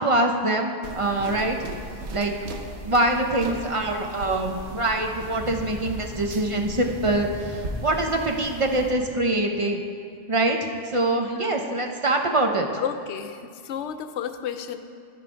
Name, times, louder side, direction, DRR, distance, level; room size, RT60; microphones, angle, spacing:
voice 1, 0.0-1.6 2.1-2.3 2.8-9.9 10.3-10.6 10.8-12.7, right 2 dB, 35° right, 3 dB, 0.6 m, -24 dB
sound 1, 0.8-8.9, right 2 dB, 90° right, 1.1 m, -38 dB
sound 2, 3.4-9.1, left 2 dB, 25° left, 1.5 m, -41 dB
voice 2, 11.2-11.5 12.8-14.8, left 8 dB, 85° left, 9 dB, 0.9 m, -32 dB
12.5 x 4.9 x 5.1 m, 2.2 s
omnidirectional pair, 1.1 m